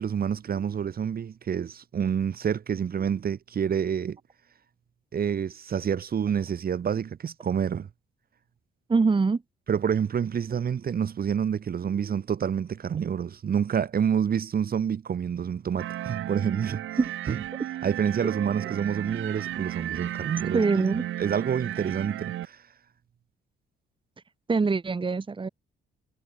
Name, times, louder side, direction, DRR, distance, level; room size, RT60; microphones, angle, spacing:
voice 1, 0.0-4.2 5.1-7.9 9.7-16.8 17.3-17.4 17.8-20.6 21.2-22.6, right 8 dB, 50° right, 1.7 m, -28 dB
voice 2, 8.9-9.4 17.0-17.1 20.5-21.0 24.5-25.5, right 4 dB, 25° right, 1.7 m, -23 dB
sound 1, 15.8-22.5, right 13 dB, 80° right, 4.9 m, -34 dB
cardioid pair, 90°, 20 cm